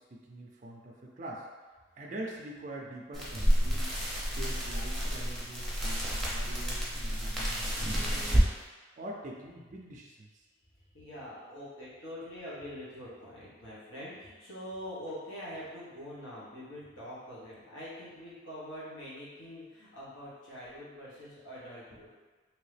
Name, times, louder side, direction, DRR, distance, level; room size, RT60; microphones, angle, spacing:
voice 1, 0.0-1.5 2.0-3.9 4.3-8.4 9.0-10.4, right 1 dB, 40° right, -2 dB, 0.4 m, -44 dB
sound 1, 3.1-8.5, equal, ahead, 0.7 m, -29 dB
voice 2, 10.9-22.1, equal, 85° left, -9 dB, 1.3 m, -44 dB
3.0 x 2.8 x 3.3 m, 1.3 s
head